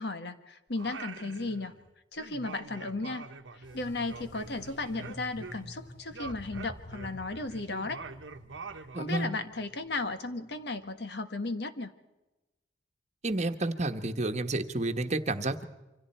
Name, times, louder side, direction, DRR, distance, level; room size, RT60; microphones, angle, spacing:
voice 1, 0.0-1.7 2.1-3.3 3.6-8.0 9.0-11.9, left 3 dB, 60° left, 9 dB, 1.5 m, -35 dB
Singing, 0.7-1.9 2.2-5.8 6.1-9.3, right 4 dB, 85° right, 1.2 m, -45 dB
sound 1, 3.6-11.1, equal, 45° left, 4.1 m, -49 dB
voice 2, 8.9-9.3 13.2-15.6, right 2 dB, 40° right, 7 dB, 1.3 m, -30 dB
28.0 x 25.0 x 4.4 m, 1.0 s
head